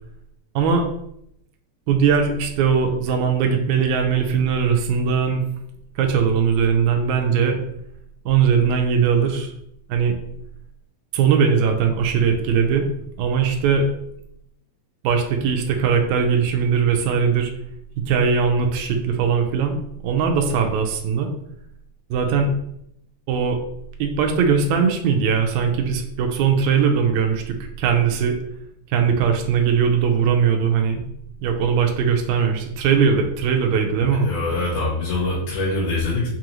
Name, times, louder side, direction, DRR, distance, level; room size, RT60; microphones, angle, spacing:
voice 1, 0.6-0.9 1.9-5.4 6.0-7.6 8.3-9.5 9.9-10.2 11.1-12.9 13.2-13.9 15.0-17.5 18.1-21.3 22.1-22.5 23.3-23.6 24.0-28.4 28.9-31.0 31.4-34.3, right 6 dB, 80° right, 3 dB, 1.9 m, -20 dB
voice 2, 34.2-36.3, left 2 dB, 75° left, -6 dB, 2.3 m, -24 dB
5.4 x 2.5 x 3.0 m, 0.76 s
omnidirectional pair, 3.3 m